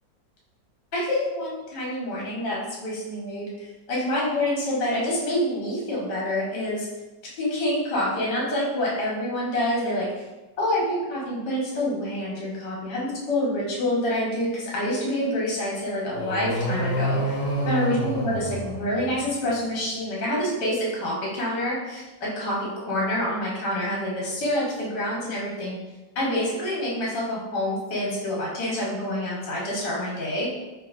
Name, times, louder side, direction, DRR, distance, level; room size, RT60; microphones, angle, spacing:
voice 1, 0.9-6.9 7.4-10.0 10.6-17.3 17.7-25.8 26.1-30.5, left 1 dB, 70° left, -5 dB, 1.6 m, -27 dB
sound 1, 16.1-19.4, right 1 dB, 50° left, 0.9 m, -28 dB
3.0 x 3.0 x 2.4 m, 1.1 s
omnidirectional pair, 2.0 m